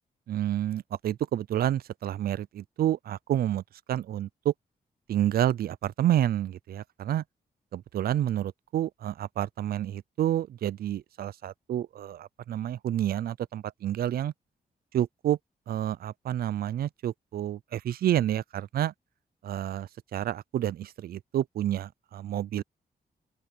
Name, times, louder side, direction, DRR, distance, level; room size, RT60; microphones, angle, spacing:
voice 1, 0.3-4.5 5.1-7.2 7.7-14.3 14.9-15.4 15.7-18.9 19.4-22.6, right 11 dB, 80° right, 0.4 m, -29 dB
open air
wide cardioid pair, 120°, 16 cm